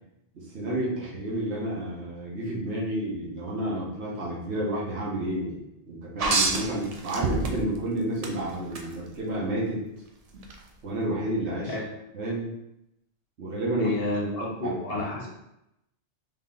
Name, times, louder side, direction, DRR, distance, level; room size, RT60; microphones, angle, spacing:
voice 1, 0.3-5.6 5.9-9.8 10.3-10.4 10.8-11.7 12.1-12.5 13.4-13.9 14.6-14.7, right 1 dB, 70° right, -5 dB, 1.3 m, -30 dB
sound 1, 6.2-7.8 8.2-8.9 10.4-10.5, right 3 dB, 50° right, 0.4 m, -26 dB
voice 2, 13.8-15.3, left 2 dB, 60° left, -2 dB, 0.9 m, -30 dB
3.6 x 2.8 x 3.6 m, 0.83 s
omnidirectional pair, 1.2 m